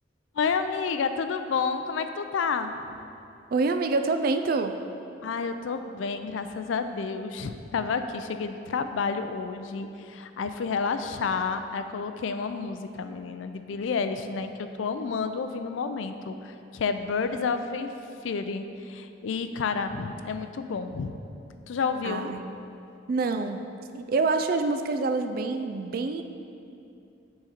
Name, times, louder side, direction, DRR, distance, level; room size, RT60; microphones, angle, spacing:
voice 1, 0.3-2.7 5.2-14.5 14.8-17.9 18.2-21.2 21.7-22.3, left 5 dB, 85° left, 9 dB, 0.4 m, -30 dB
voice 2, 3.5-4.7 22.0-22.4 23.1-23.6 23.9-26.2, right 3 dB, 50° right, 7 dB, 0.3 m, -26 dB
8.8 x 3.8 x 4.3 m, 2.7 s
head